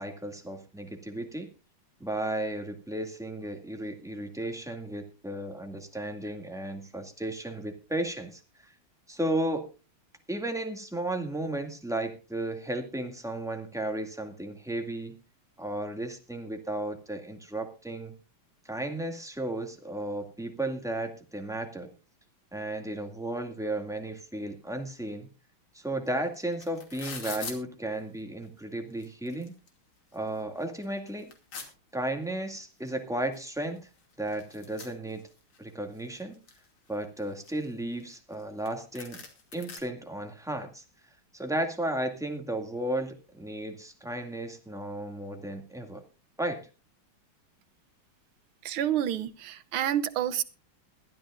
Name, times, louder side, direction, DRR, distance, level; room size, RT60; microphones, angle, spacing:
voice 1, 0.0-1.5 2.0-8.7 9.1-9.6 10.3-15.2 15.6-18.1 18.6-21.9 22.5-25.3 25.7-29.5 30.1-31.3 31.9-33.9 34.2-35.2 35.6-36.4 36.9-39.2 39.5-40.8 41.3-46.0 46.4-46.6, right 1 dB, ahead, 4 dB, 2.0 m, -34 dB
sound 1, 26.1-26.2 26.3-27.6 28.4-28.5 28.9-29.7 30.1-30.2 30.6-31.7 32.9-33.0 33.3-33.4 33.6-35.6 36.0-36.7 37.2-38.4 38.7-38.8 39.0-39.8, left 5 dB, 85° left, 3.4 m, -43 dB
voice 2, 48.6-50.4, right 10 dB, 90° right, 11 dB, 1.8 m, -29 dB
21.5 x 12.5 x 2.5 m, 0.31 s
omnidirectional pair, 2.2 m